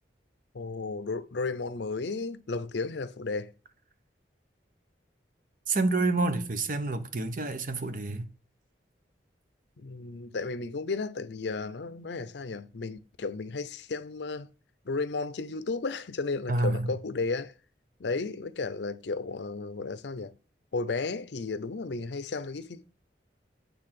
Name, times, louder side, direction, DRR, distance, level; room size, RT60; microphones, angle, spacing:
voice 1, 0.5-3.5 9.8-14.5 14.8-17.5 18.0-20.3 20.7-22.9, left 3 dB, 75° left, 0.6 m, -33 dB
voice 2, 5.7-8.3 16.5-16.9, right 3 dB, 45° right, 0.8 m, -28 dB
8.8 x 3.4 x 5.8 m
head